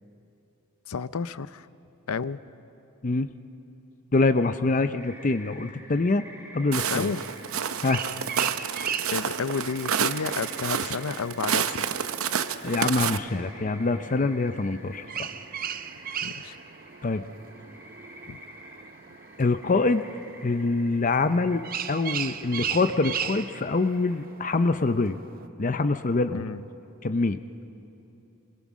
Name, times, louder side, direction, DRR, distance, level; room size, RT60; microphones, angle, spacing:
voice 1, 0.9-1.7 2.1-2.4 6.9-7.2 9.1-11.9 16.2-16.6 18.3-18.4 26.3-26.6, left 5 dB, 90° left, 15 dB, 0.6 m, -31 dB
voice 2, 3.0-3.3 4.1-6.3 6.5-7.1 7.8-8.1 12.6-15.3 17.0-17.2 19.4-20.1 20.4-25.2 25.6-26.4 27.0-27.4, left 3 dB, 35° left, 10 dB, 0.5 m, -25 dB
sound 1, 5.0-24.2, equal, 10° right, 3.5 m, -49 dB
Walk footsteps, 6.7-13.2, right 7 dB, 75° right, 0.8 m, -29 dB
sound 2, 7.7-25.5, right 8 dB, 40° right, 0.6 m, -38 dB
27.0 x 22.0 x 6.2 m, 2.9 s
head